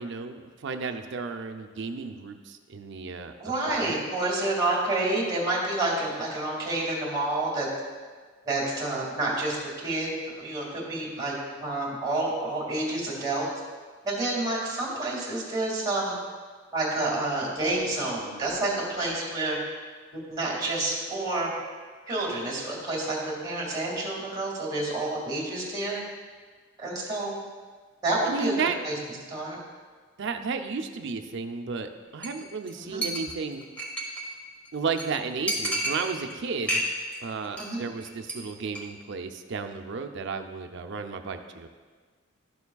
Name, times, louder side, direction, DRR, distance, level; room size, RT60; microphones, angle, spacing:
voice 1, 0.0-4.0 28.2-28.8 30.2-33.6 34.7-36.8 37.2-41.7, right 5 dB, 60° right, 6 dB, 0.5 m, -33 dB
voice 2, 3.4-7.7 8.5-9.6 9.8-11.3 11.6-13.5 14.0-16.2 16.7-19.6 20.1-21.5 22.1-26.0 26.8-27.4 28.0-28.5 28.8-28.9 29.3-29.6 32.8-33.0 37.6-37.8, right 2 dB, 20° right, -4 dB, 2.1 m, -29 dB
Chink clink, 32.2-32.4 32.7-32.8 33.0-34.3 34.7-34.8 35.0-35.1 35.5-36.3 36.6-37.2 37.4-37.7 38.0-38.3 38.7-38.8, right 1 dB, 5° left, 1.2 m, -30 dB
12.0 x 7.0 x 2.3 m, 1.5 s
head